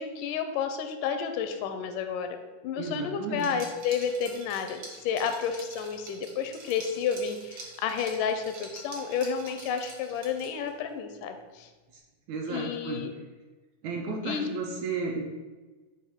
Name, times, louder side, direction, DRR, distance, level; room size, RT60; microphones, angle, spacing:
voice 1, 0.0-2.4 2.6-11.7 12.5-13.1 14.2-14.5, left 7 dB, 80° left, 7 dB, 2.1 m, -31 dB
voice 2, 2.8-3.5 12.3-13.0 13.8-15.2, right 4 dB, 75° right, 0 dB, 1.8 m, -33 dB
Liquid, 3.3-10.7, right 3 dB, 60° right, 1.2 m, -46 dB
7.4 x 2.6 x 5.5 m, 1.3 s
omnidirectional pair, 3.7 m